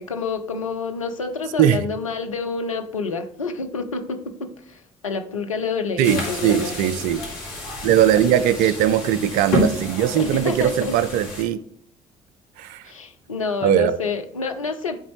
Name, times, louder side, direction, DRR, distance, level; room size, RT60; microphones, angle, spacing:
voice 1, 0.0-6.8 8.2-8.3 10.2-11.0 12.8-15.0, left 4 dB, 85° left, 0.5 m, -28 dB
sound 1, 6.0-11.4, left 1 dB, 65° left, 2.2 m, -29 dB
voice 2, 6.0-7.2 7.8-11.6 12.6-12.8 13.6-14.0, right 10 dB, 60° right, 0.5 m, -20 dB
9.9 x 4.0 x 3.1 m
figure-of-eight pair, 50°, 17 cm